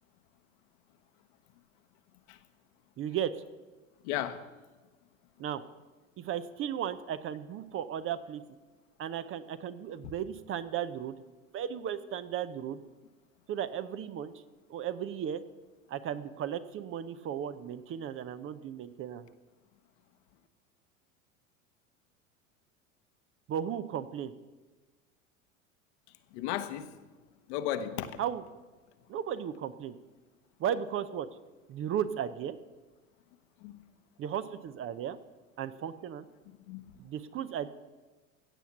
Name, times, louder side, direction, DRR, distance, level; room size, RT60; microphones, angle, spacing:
voice 1, 3.0-3.3 5.4-5.6 6.2-8.4 9.0-11.1 11.5-12.8 13.5-14.3 14.7-15.4 15.9-19.3 23.5-24.3 28.2-28.4 29.1-29.9 30.6-31.3 31.7-32.6 34.2-35.2 35.6-36.2 37.0-37.7, right 9 dB, 35° right, 0.7 m, -35 dB
voice 2, 4.0-4.4 26.3-26.9 27.5-28.2 33.6-33.8 36.7-36.8, left 11 dB, 60° left, 1.1 m, -34 dB
16.0 x 7.1 x 5.9 m
hypercardioid pair, 80°, 40 cm